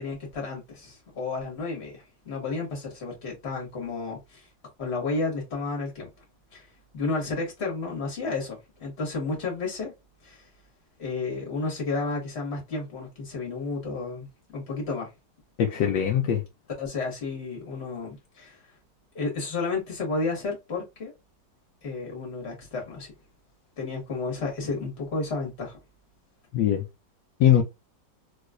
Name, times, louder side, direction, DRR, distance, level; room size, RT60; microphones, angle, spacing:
voice 1, 0.0-4.4 4.8-6.1 6.5-6.7 6.9-9.9 10.2-10.4 11.0-14.3 14.5-15.1 16.8-18.6 19.1-21.1 21.8-23.1 23.8-25.8, left 3 dB, 35° left, 1.7 m, -32 dB
voice 2, 15.6-16.4 26.5-26.8 27.4-27.6, left 10 dB, 75° left, 1.3 m, -21 dB
3.2 x 3.2 x 2.4 m
omnidirectional pair, 2.0 m